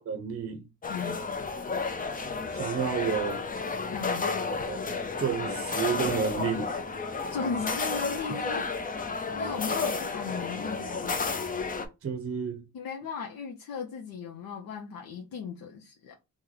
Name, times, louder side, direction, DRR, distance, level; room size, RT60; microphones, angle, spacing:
voice 1, 0.1-0.6 2.5-3.4 4.7-6.7 12.0-12.6, right 7 dB, 40° right, 0.6 m, -31 dB
sound 1, 0.8-11.9, left 4 dB, 25° left, 0.5 m, -32 dB
voice 2, 0.9-1.3 3.9-4.3 7.3-8.6 9.3-11.2 12.7-16.1, left 6 dB, 70° left, 0.7 m, -36 dB
3.1 x 2.1 x 3.8 m
cardioid pair, 80°, 35 cm